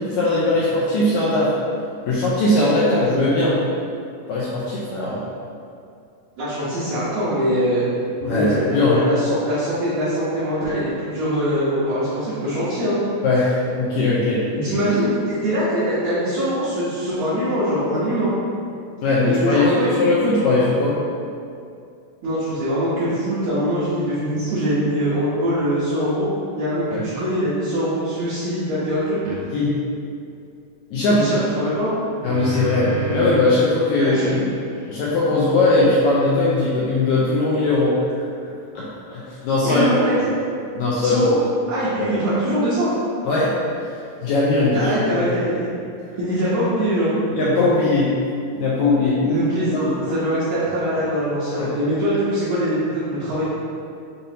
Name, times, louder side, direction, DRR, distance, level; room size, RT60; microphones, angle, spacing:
voice 1, 0.0-1.5 2.1-3.6 4.3-5.2 8.2-9.0 13.2-14.4 14.7-14.8 19.0-21.0 26.9-27.0 29.5-29.8 30.9-31.3 32.2-34.4 34.9-38.0 38.8-39.9 40.8-41.3 42.0-42.1 43.3-43.5 43.8-44.9 45.2-45.4 47.3-48.1 48.5-49.2 49.7-50.0 51.5-51.7, left 2 dB, 80° left, -7 dB, 1.7 m, -19 dB
voice 2, 6.4-7.9 8.3-13.0 14.5-18.3 19.3-20.4 22.2-26.3 26.6-29.2 31.1-31.9 34.0-34.3 39.6-40.3 41.0-41.4 41.7-42.9 44.7-45.7 46.2-47.1 49.2-53.4, equal, 70° right, -11 dB, 1.7 m, -23 dB
sound 1, 29.3-29.4 31.8-33.6 34.1-37.4, right 2 dB, 90° right, 1.3 m, -31 dB
6.9 x 2.6 x 2.7 m, 2.4 s
omnidirectional pair, 3.8 m